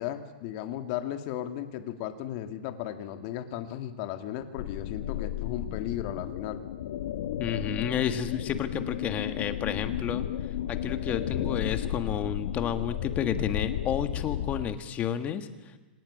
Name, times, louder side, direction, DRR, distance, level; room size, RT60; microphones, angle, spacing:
voice 1, 0.0-6.6, left 11 dB, 45° left, 7 dB, 1.8 m, -35 dB
sound 1, 4.6-14.7, left 11 dB, 65° left, 1.4 m, -33 dB
voice 2, 7.4-10.2 10.7-15.8, left 8 dB, 25° left, 9 dB, 1.7 m, -31 dB
25.5 x 18.0 x 8.7 m, 1.2 s
hypercardioid pair, 140°, 6 cm